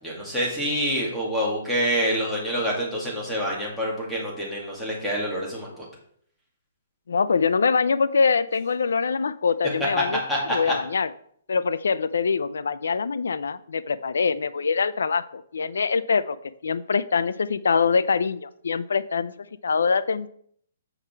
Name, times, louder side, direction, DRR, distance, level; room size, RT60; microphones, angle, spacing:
voice 1, 0.0-5.8 10.3-10.7, equal, 5° left, -5 dB, 2.3 m, -27 dB
voice 2, 7.1-10.2 10.5-11.1 11.5-16.4 16.6-19.3 19.6-20.3, left 5 dB, 90° left, 16 dB, 0.4 m, -24 dB
7.9 x 5.8 x 4.4 m, 0.63 s
hypercardioid pair, 165°, 0 cm